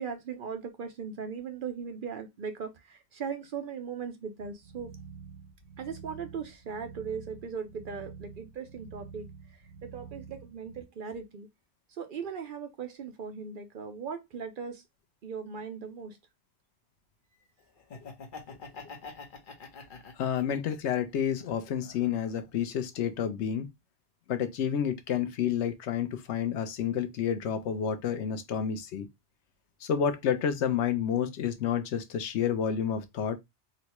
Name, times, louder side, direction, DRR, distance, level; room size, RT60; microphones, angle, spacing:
voice 1, 0.0-4.9 5.8-9.3 9.8-11.5 12.0-14.8 15.2-16.2, right 6 dB, 55° right, 0.7 m, -38 dB
sound 1, 4.4-10.8, right 6 dB, 85° right, 1.4 m, -48 dB
Laughter, 17.8-20.9 21.4-22.5, left 4 dB, 50° left, 0.9 m, -46 dB
voice 2, 20.2-23.7 24.3-29.1 29.8-33.4, left 8 dB, 85° left, 0.9 m, -30 dB
3.8 x 2.2 x 2.9 m
omnidirectional pair, 1.2 m